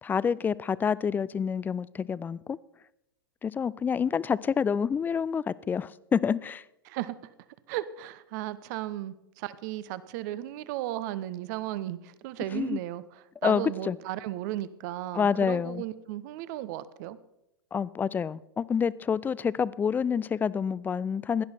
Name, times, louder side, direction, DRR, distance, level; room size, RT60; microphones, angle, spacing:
voice 1, 0.0-2.6 3.4-6.6 12.5-12.8 13.4-14.0 15.1-15.8 17.7-21.4, left 6 dB, 15° left, 20 dB, 0.4 m, -28 dB
voice 2, 7.7-17.2, right 14 dB, 50° right, 16 dB, 0.9 m, -35 dB
16.5 x 11.5 x 4.4 m, 0.88 s
hypercardioid pair, 100°, 12 cm